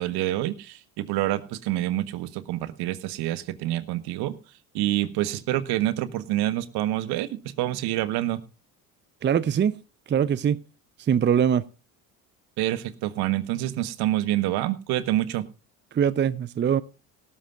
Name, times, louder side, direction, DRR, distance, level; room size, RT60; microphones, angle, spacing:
voice 1, 0.0-4.4 4.7-8.4 12.6-15.5, right 14 dB, 65° right, 1.3 m, -27 dB
voice 2, 9.2-9.8 10.1-10.6 11.1-11.6 15.9-16.8, right 8 dB, 25° right, 0.6 m, -22 dB
18.0 x 13.0 x 2.5 m
hypercardioid pair, 65°, 42 cm